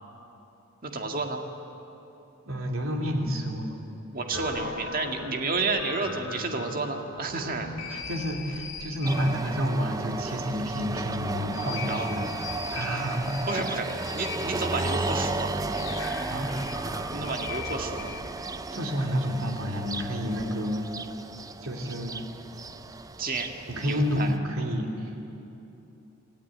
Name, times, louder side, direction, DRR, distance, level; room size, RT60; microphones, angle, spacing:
voice 1, 0.8-1.4 4.1-7.7 11.9-12.1 13.5-13.9 14.1-15.5 17.1-18.1 23.2-23.5 23.9-24.3, right 3 dB, 40° right, 3 dB, 1.9 m, -31 dB
voice 2, 2.5-3.8 7.9-13.4 16.3-16.5 18.7-20.8 21.6-22.3 23.7-25.2, equal, 70° right, 1 dB, 2.9 m, -30 dB
sound 1, 4.3-18.2, left 4 dB, 65° left, 2.3 m, -40 dB
sound 2, 9.0-24.4, right 2 dB, 15° right, 0.5 m, -34 dB
27.5 x 14.0 x 9.3 m, 3.0 s
head